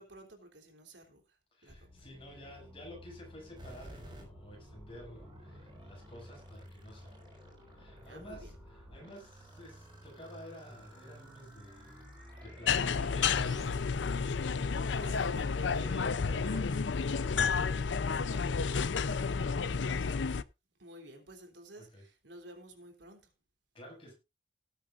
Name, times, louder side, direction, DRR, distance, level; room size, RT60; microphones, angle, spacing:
voice 1, 0.0-2.1 8.0-8.5 14.6-15.8 20.8-23.3, right 1 dB, 75° right, 3.2 m, -53 dB
voice 2, 1.5-7.4 7.7-14.9 15.8-18.5 21.7-22.0 23.7-24.1, equal, 30° left, 6.5 m, -52 dB
sound 1, 1.7-13.7, equal, ahead, 6.3 m, -54 dB
sound 2, 3.6-16.1, right 1 dB, 25° right, 6.1 m, -56 dB
sound 3, 12.7-20.4, left 5 dB, 80° left, 0.6 m, -31 dB
18.0 x 9.0 x 2.5 m
head